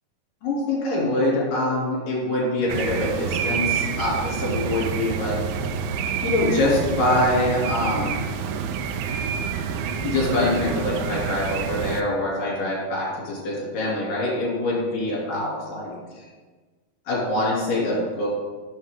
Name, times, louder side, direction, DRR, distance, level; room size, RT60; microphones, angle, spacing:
voice 1, 0.4-5.4 6.2-8.2 10.0-16.3 17.1-18.3, left 1 dB, 50° left, -4 dB, 4.1 m, -24 dB
sound 1, 2.7-12.0, right 6 dB, 85° right, 2.9 m, -28 dB
10.5 x 7.2 x 3.7 m, 1.4 s
omnidirectional pair, 5.4 m